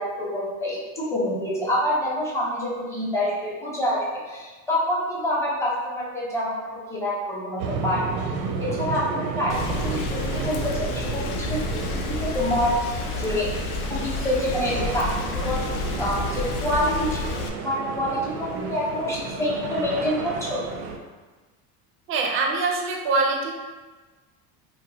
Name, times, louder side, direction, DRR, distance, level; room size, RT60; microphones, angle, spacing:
voice 1, 0.0-8.0 8.6-11.8 12.2-13.5 13.9-15.6 16.0-20.6, left 1 dB, 5° left, -6 dB, 0.7 m, -27 dB
sound 1, 7.6-21.0, right 5 dB, 90° right, 0.6 m, -32 dB
Rain, 9.5-17.5, left 4 dB, 75° left, 0.6 m, -30 dB
voice 2, 22.1-23.5, right 3 dB, 30° right, 2 dB, 0.4 m, -23 dB
2.9 x 2.1 x 3.9 m, 1.3 s
cardioid pair, 135°, 46 cm